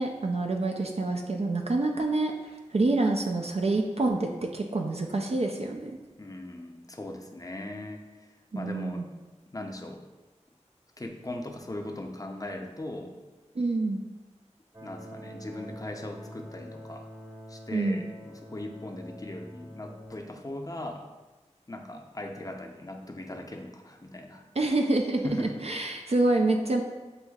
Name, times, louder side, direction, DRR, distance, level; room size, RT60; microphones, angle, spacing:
voice 1, 0.0-6.0 8.5-9.1 13.6-14.0 17.7-18.0 24.6-26.8, right 2 dB, 55° right, 2 dB, 0.4 m, -27 dB
voice 2, 6.2-8.3 8.5-9.0 9.5-10.0 11.0-13.2 14.8-17.1 17.5-21.0 21.7-24.4 25.2-25.6, left 1 dB, 30° left, 3 dB, 0.6 m, -39 dB
sound 1, 14.7-20.2, equal, 25° right, 0.9 m, -45 dB
7.6 x 2.7 x 2.3 m, 1.2 s
wide cardioid pair, 45°, 12 cm